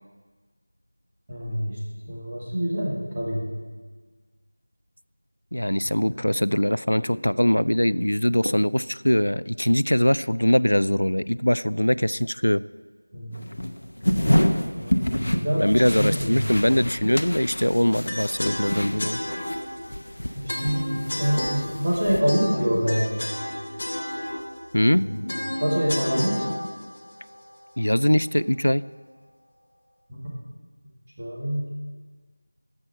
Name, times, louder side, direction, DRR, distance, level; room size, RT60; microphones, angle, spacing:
voice 1, 1.3-3.6 7.0-7.3 13.1-13.6 14.7-16.6 20.3-23.3 25.6-26.4 31.2-31.7, equal, 15° right, -7 dB, 1.9 m, -26 dB
voice 2, 5.5-12.6 15.6-19.2 24.7-25.6 27.8-28.8, equal, 85° left, 18 dB, 0.3 m, -22 dB
sound 1, 13.3-19.6 19.8-22.2, left 1 dB, 65° left, 0.8 m, -28 dB
sound 2, 18.1-28.1, left 1 dB, 35° left, 1.1 m, -32 dB
10.5 x 7.5 x 5.8 m, 1.4 s
figure-of-eight pair, 175°, 0 cm